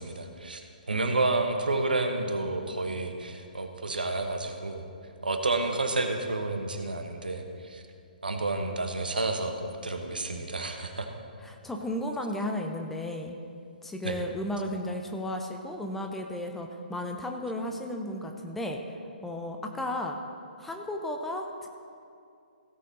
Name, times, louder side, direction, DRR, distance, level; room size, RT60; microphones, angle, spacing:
voice 1, 0.0-4.9 5.2-7.8 8.2-11.1 14.0-14.2, right 2 dB, 65° right, 5 dB, 1.1 m, -30 dB
voice 2, 11.4-13.4 13.8-18.8 19.2-20.2 20.6-21.7, left 1 dB, 5° left, 2 dB, 0.5 m, -34 dB
16.5 x 7.4 x 4.1 m, 2.4 s
figure-of-eight pair, 130°, 5 cm